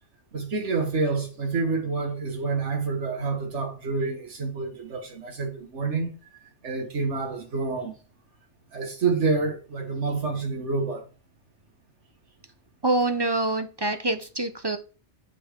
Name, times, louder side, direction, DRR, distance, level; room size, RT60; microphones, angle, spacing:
voice 1, 0.3-6.1 6.6-7.9 8.7-11.1, right 4 dB, 90° right, 1.8 m, -28 dB
voice 2, 12.8-14.8, right 2 dB, 30° right, 0.6 m, -25 dB
7.8 x 4.8 x 4.5 m
omnidirectional pair, 1.2 m